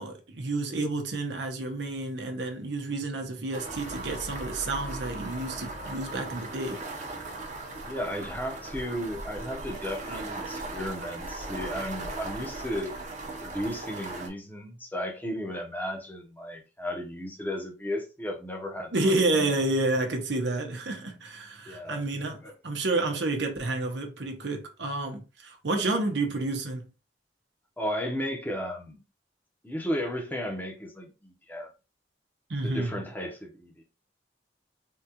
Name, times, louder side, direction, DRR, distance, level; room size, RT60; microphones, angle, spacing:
voice 1, 0.0-6.8 18.9-26.8 32.5-33.0, right 2 dB, 70° right, 0.8 m, -30 dB
sound 1, 3.5-14.3, right 2 dB, 40° right, 0.8 m, -38 dB
sound 2, 3.7-11.7, left 1 dB, 70° left, 0.8 m, -46 dB
voice 2, 7.8-12.9 13.4-19.1 21.7-22.0 22.4-22.5 27.8-29.0 29.6-31.7 32.6-33.8, equal, 10° left, 0.8 m, -34 dB
3.6 x 2.4 x 2.8 m
head